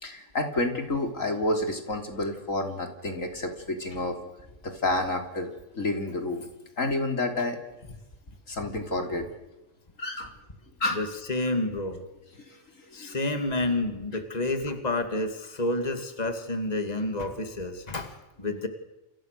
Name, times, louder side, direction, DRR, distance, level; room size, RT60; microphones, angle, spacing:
voice 1, 0.0-4.2 4.6-6.4 6.8-7.6 8.5-9.2 10.0-10.3 10.8-11.0 12.5-12.6 12.9-13.2, left 2 dB, 75° left, 4 dB, 3.9 m, -29 dB
voice 2, 10.9-12.1 12.9-18.7, left 2 dB, 30° left, 6 dB, 2.5 m, -30 dB
30.0 x 29.0 x 6.7 m, 0.96 s
omnidirectional pair, 1.4 m